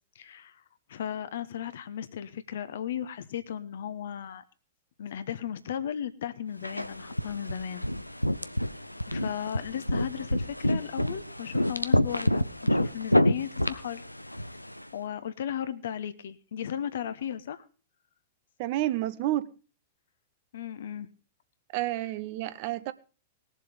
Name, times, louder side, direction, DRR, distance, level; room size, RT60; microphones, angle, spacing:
voice 1, 0.1-0.5 0.9-4.4 5.0-7.9 9.1-14.0 14.9-17.6 20.5-21.1, left 9 dB, 60° left, 1.2 m, -35 dB
sound 1, 6.6-14.8, left 1 dB, 90° left, 0.7 m, -28 dB
voice 2, 18.6-19.5 21.7-22.9, right 15 dB, 45° right, 0.9 m, -30 dB
20.0 x 7.5 x 5.1 m
figure-of-eight pair, 100°, 0 cm